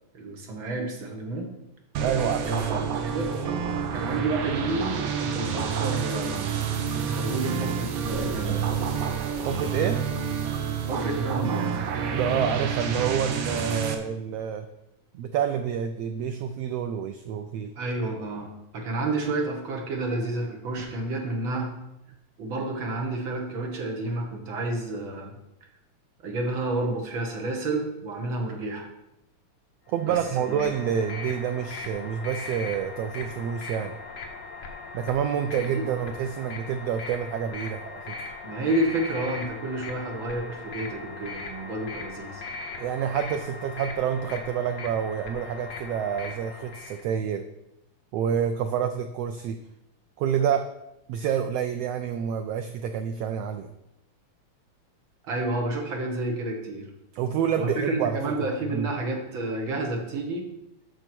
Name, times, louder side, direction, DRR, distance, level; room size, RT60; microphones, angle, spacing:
voice 1, 0.1-1.5 2.5-3.3 3.9-6.6 7.0-8.6 10.9-11.8 17.8-21.8 22.4-25.4 26.2-28.9 30.0-30.2 30.5-30.7 35.7-35.8 38.4-42.4 55.2-56.9 57.6-60.5, right 2 dB, 50° right, 1 dB, 1.9 m, -30 dB
sound 1, 1.9-13.9, right 6 dB, 65° right, 1.8 m, -28 dB
voice 2, 2.0-2.4 9.4-10.0 12.1-14.7 15.1-17.7 29.9-34.0 34.9-38.1 42.8-47.5 48.1-49.6 50.2-50.7 51.1-53.7 57.1-58.2 58.7-58.9, right 8 dB, 85° right, 8 dB, 1.4 m, -28 dB
sound 2, 29.9-47.0, left 3 dB, 55° left, 1.3 m, -39 dB
7.5 x 6.5 x 6.1 m, 0.87 s
omnidirectional pair, 3.4 m